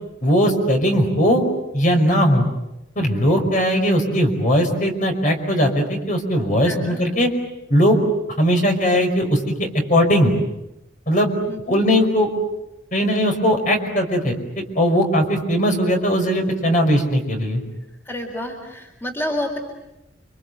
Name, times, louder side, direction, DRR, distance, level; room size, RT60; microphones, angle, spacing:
voice 1, 0.2-1.4 1.7-2.5 3.0-7.3 7.7-8.0 8.4-10.3 11.1-11.3 11.7-12.3 12.9-14.4 14.8-17.6, equal, 45° left, 4 dB, 5.4 m, -19 dB
voice 2, 6.6-7.0 11.5-11.8 18.0-19.6, left 1 dB, 10° left, 3 dB, 3.9 m, -29 dB
29.0 x 25.5 x 8.2 m, 0.90 s
head